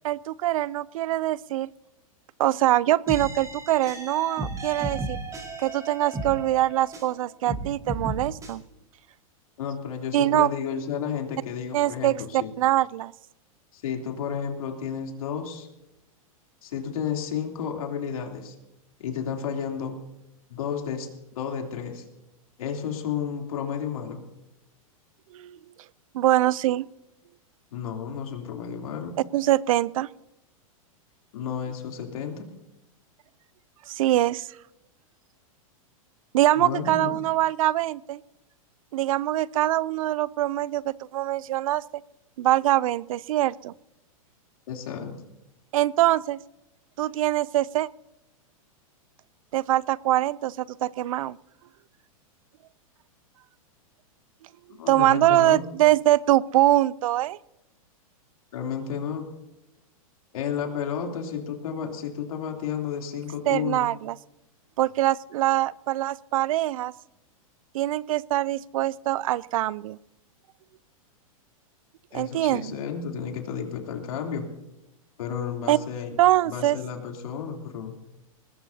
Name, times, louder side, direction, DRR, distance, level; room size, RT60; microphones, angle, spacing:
voice 1, 0.0-1.7 2.4-5.2 5.6-8.6 10.1-10.5 11.7-13.1 25.3-25.6 26.1-26.9 29.3-30.1 33.9-34.5 36.3-38.2 38.9-41.8 42.4-43.7 45.7-46.4 47.0-47.9 49.5-51.4 54.9-57.4 63.5-64.2 64.8-66.9 67.7-70.0 72.1-72.7 75.7-75.8 76.2-76.8, right 14 dB, 70° right, 22 dB, 0.5 m, -23 dB
sound 1, 3.1-7.1 7.5-8.5, right 2 dB, 20° right, 4.7 m, -34 dB
voice 2, 9.6-12.5 13.7-15.7 16.6-18.5 19.0-20.0 20.5-22.0 22.6-24.2 27.7-29.1 31.3-32.5 36.5-37.2 44.7-45.2 54.8-55.6 58.5-59.2 60.3-63.9 72.1-74.5 75.2-76.1 76.4-78.0, left 7 dB, 75° left, 2 dB, 3.3 m, -32 dB
22.0 x 20.0 x 2.8 m, 0.94 s
hypercardioid pair, 130°, 18 cm